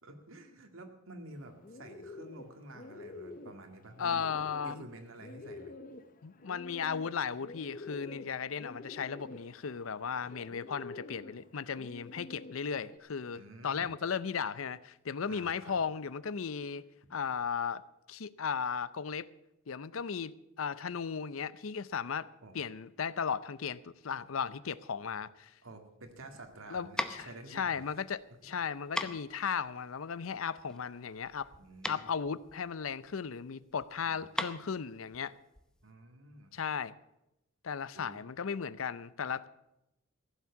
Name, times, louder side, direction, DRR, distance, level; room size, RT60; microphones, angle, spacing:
voice 1, 0.0-4.3 4.6-5.7 13.4-13.9 15.3-15.8 22.4-22.6 25.6-27.8 28.4-28.6 31.6-32.2 34.0-34.3 35.8-36.5 37.9-38.2, right 2 dB, 75° right, 2.0 m, -50 dB
Bird, 1.3-13.0, left 2 dB, 45° left, 0.9 m, -49 dB
voice 2, 4.0-4.9 6.2-16.8 17.1-17.8 18.1-19.3 19.7-22.3 22.5-25.5 26.7-31.5 31.9-35.3 36.5-37.0 37.6-39.5, left 6 dB, 80° left, 0.6 m, -36 dB
sound 1, 26.0-35.9, left 1 dB, 5° left, 0.7 m, -41 dB
15.5 x 7.3 x 8.3 m
head